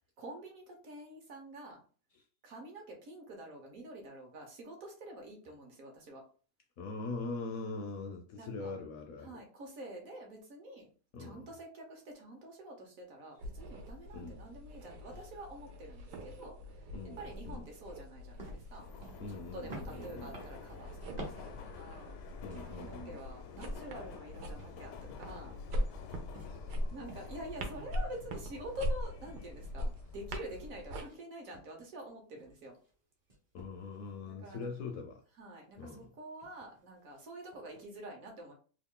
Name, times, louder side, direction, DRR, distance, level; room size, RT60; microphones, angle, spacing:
voice 1, 0.2-1.8 2.4-6.2 8.4-8.7 9.2-10.9 11.2-16.6 17.2-18.9 19.3-22.1 22.6-25.6 26.9-32.8 34.2-34.7 35.4-38.5, right 1 dB, 60° right, 1.2 m, -47 dB
voice 2, 6.8-9.4 11.1-11.5 14.1-14.4 16.9-17.7 19.2-20.4 22.4-23.2 26.4-26.7 33.5-35.2 35.8-36.1, left 3 dB, 70° left, 0.9 m, -42 dB
sound 1, 13.4-31.0, equal, 80° right, 1.3 m, -42 dB
sound 2, 18.4-22.9 23.3-27.9 28.1-30.5 31.0-31.2 31.5-32.9 33.3-34.1 34.5-34.8 35.8-36.0 36.4-36.8 37.1-37.2 37.5-37.9, right 1 dB, 35° right, 0.7 m, -52 dB
Subway metro underground, 18.7-30.8, left 5 dB, 85° left, 1.2 m, -50 dB
3.1 x 2.4 x 3.6 m
omnidirectional pair, 1.8 m